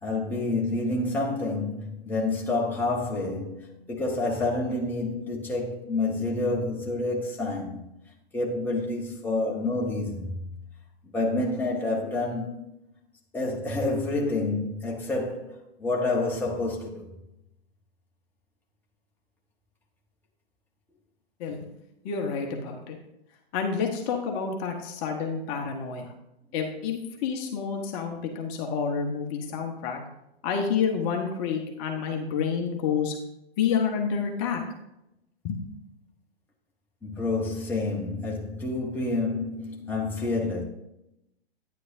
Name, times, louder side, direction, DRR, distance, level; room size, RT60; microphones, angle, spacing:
voice 1, 0.0-7.8 8.3-10.4 11.1-12.6 13.3-17.1 37.0-40.6, left 2 dB, 5° left, 1.1 m, -28 dB
voice 2, 22.0-23.0 23.5-26.1 26.5-30.0 30.4-33.2 33.6-34.6 35.4-35.6, left 6 dB, 30° left, 1.1 m, -29 dB
9.7 x 9.6 x 2.7 m
hypercardioid pair, 125°, 32 cm